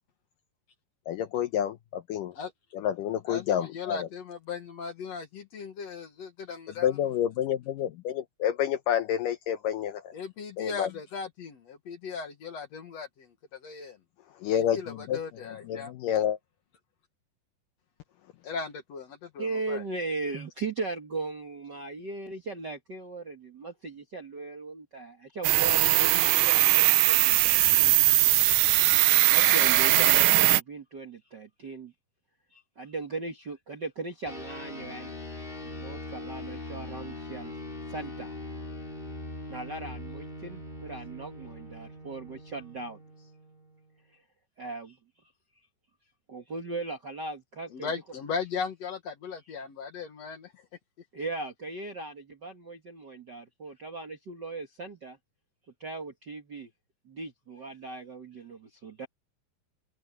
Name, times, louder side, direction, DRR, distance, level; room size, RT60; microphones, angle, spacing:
voice 1, 1.1-2.3 2.7-4.1 6.8-10.0 10.6-10.9 14.4-15.2 15.7-16.4, left 10 dB, 75° left, 2.1 m, -29 dB
voice 2, 3.3-7.0 10.1-14.0 14.7-15.9 18.4-19.8 47.7-50.5, left 5 dB, 55° left, 2.1 m, -37 dB
voice 3, 19.4-27.9 28.7-28.9 29.3-31.9 32.5-35.1 35.6-37.5 37.9-38.3 39.5-43.3 44.6-45.0 46.3-47.9 51.1-55.2 55.8-56.7 57.0-59.1, right 3 dB, 45° right, 1.4 m, -38 dB
sound 1, 25.4-30.6, right 15 dB, 75° right, 2.0 m, -21 dB
sound 2, 34.3-44.0, left 2 dB, 15° left, 3.7 m, -41 dB
open air
omnidirectional pair, 4.5 m